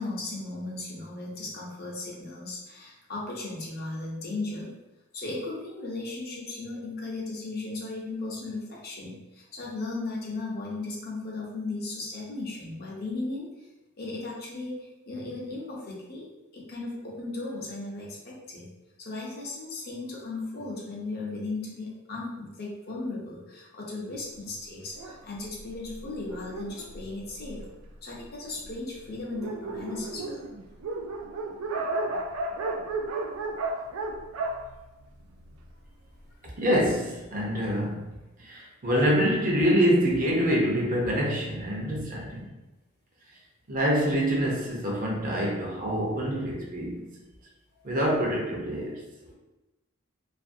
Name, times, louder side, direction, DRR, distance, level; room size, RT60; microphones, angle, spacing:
voice 1, 0.0-4.8 5.1-13.5 14.0-16.3 16.5-18.7 19.0-27.6 28.0-30.5, left 2 dB, 45° left, -3 dB, 0.6 m, -36 dB
Dog, 24.9-27.9 28.6-28.7 29.0-29.1 29.3-35.7, right 2 dB, 80° right, 0.3 m, -34 dB
voice 2, 36.6-38.1 38.4-42.5 43.7-47.1 47.8-49.0 49.3-49.4, equal, 40° right, -3 dB, 0.6 m, -26 dB
2.5 x 2.5 x 2.6 m, 1.0 s
head